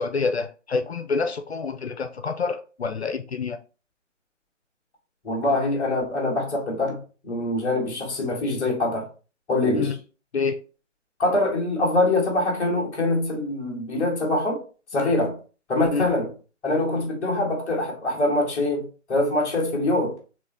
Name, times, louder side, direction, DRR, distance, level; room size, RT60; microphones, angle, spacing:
voice 1, 0.0-3.6 9.7-10.0 10.3-10.6 15.0-15.1 15.9-16.1, left 4 dB, 60° left, 0.6 m, -27 dB
voice 2, 5.2-9.1 9.5-9.9 11.2-14.6 14.9-15.4 15.7-16.3 16.6-20.1, left 2 dB, 5° left, 0.8 m, -24 dB
4.0 x 3.0 x 3.5 m
figure-of-eight pair, 140°, 37 cm